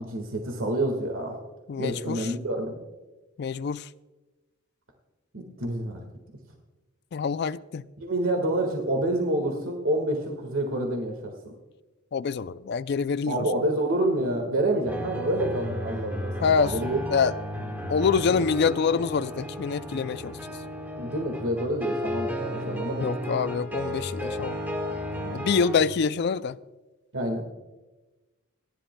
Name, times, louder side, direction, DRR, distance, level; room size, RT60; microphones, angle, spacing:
voice 1, 0.0-1.4 1.8-2.7 5.3-6.0 8.0-11.5 13.3-17.0 21.0-23.1 27.1-27.5, right 1 dB, 70° right, 1.7 m, -28 dB
voice 2, 1.7-2.3 3.4-3.9 7.1-7.8 12.1-13.5 16.4-16.7 17.1-17.3 17.9-20.4 23.0-24.6 25.3-26.6, left 5 dB, 50° left, 0.3 m, -26 dB
sound 1, 14.9-25.8, equal, 10° right, 1.6 m, -33 dB
28.5 x 11.5 x 2.2 m
head